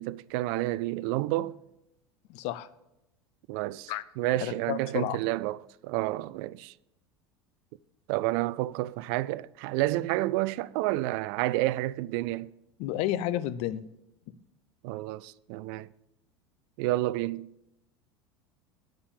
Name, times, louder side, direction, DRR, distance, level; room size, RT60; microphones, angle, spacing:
voice 1, 0.0-1.6 3.5-6.7 8.1-12.5 14.8-15.9 16.8-17.5, right 17 dB, 50° right, 0.4 m, -30 dB
voice 2, 2.3-2.7 3.9-4.0 4.4-5.2 12.8-13.8, left 13 dB, 50° left, 0.7 m, -31 dB
10.5 x 7.0 x 6.8 m
figure-of-eight pair, 75°, 14 cm